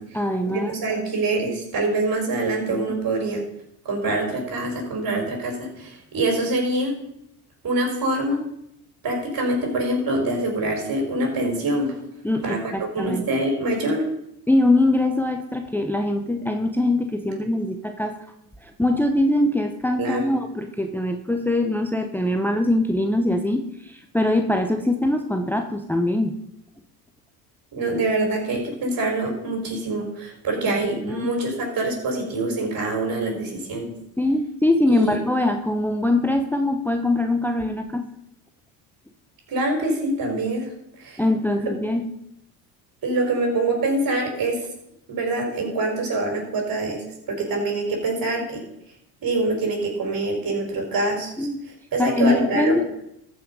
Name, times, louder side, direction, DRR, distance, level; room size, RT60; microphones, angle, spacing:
voice 1, 0.1-0.7 2.7-3.0 12.2-13.3 14.5-18.3 18.6-26.4 30.7-31.3 34.2-38.1 41.2-42.1 51.4-51.6 52.0-52.8, left 1 dB, 5° left, 5 dB, 0.9 m, -22 dB
voice 2, 0.7-3.4 3.9-6.9 7.6-8.4 9.0-12.0 12.4-14.0 20.0-20.2 27.7-33.9 34.9-35.2 39.5-40.7 41.0-41.2 43.0-44.6 45.1-47.0 47.3-48.6 49.2-51.5 51.9-52.8, right 2 dB, 45° right, 2 dB, 5.1 m, -25 dB
14.0 x 6.3 x 5.4 m, 0.77 s
hypercardioid pair, 70°, 47 cm